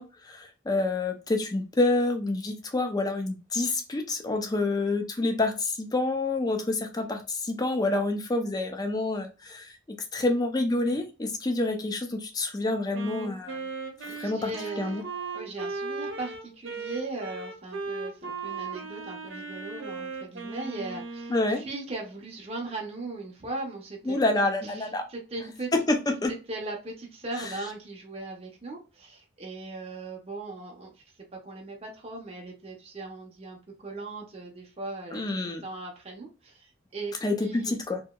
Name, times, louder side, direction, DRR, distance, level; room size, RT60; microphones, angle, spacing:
voice 1, 0.0-13.6 14.0-14.5 14.8-15.0 21.3-21.6 24.1-25.1 25.7-26.3 35.1-35.6 37.2-38.0, left 2 dB, 20° left, 5 dB, 0.4 m, -28 dB
Wind instrument woodwind instrument, 12.9-21.6, right 4 dB, 70° right, 0.7 m, -37 dB
voice 2, 14.2-15.1 15.3-24.2 24.6-25.7 26.5-31.0 31.4-37.1 37.4-37.8, right 2 dB, 30° right, -1 dB, 0.6 m, -38 dB
2.8 x 2.6 x 2.2 m, 0.32 s
head